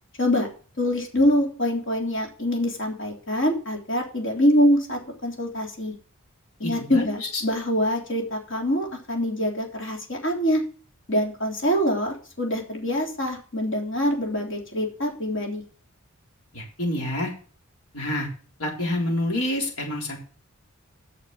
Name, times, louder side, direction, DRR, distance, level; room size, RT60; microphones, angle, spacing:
voice 1, 0.8-5.9 6.6-10.6 11.1-15.6, equal, 60° left, 0 dB, 3.4 m, -24 dB
voice 2, 6.6-7.3 16.5-17.3 17.9-18.3 18.6-20.2, left 1 dB, 85° left, -1 dB, 4.1 m, -27 dB
9.5 x 6.7 x 6.9 m, 0.41 s
head